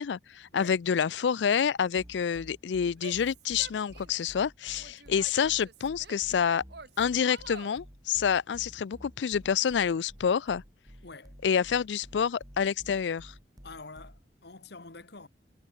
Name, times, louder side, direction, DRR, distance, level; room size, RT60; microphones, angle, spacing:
voice 1, 0.0-6.6 7.0-10.6 11.4-13.3, left 7 dB, 90° left, 0.4 m, -28 dB
sound 1, 2.0-14.3, equal, 20° right, 6.6 m, -51 dB
Female speech woman speaking / Yell, 3.0-4.3 4.8-6.3 6.7-7.8, right 4 dB, 65° right, 2.2 m, -47 dB
voice 2, 11.0-11.3 13.6-15.3, left 3 dB, 65° left, 1.9 m, -46 dB
head